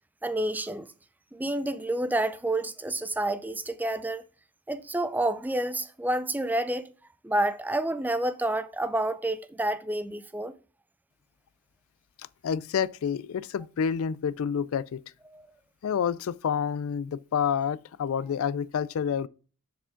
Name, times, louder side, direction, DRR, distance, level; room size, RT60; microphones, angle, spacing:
voice 1, 0.2-0.9 1.3-4.2 4.7-6.9 7.2-10.6 15.3-15.5, right 1 dB, 10° right, 0.5 m, -29 dB
voice 2, 12.2-15.0 15.8-19.3, left 7 dB, 70° left, 0.4 m, -29 dB
10.0 x 5.0 x 3.7 m
head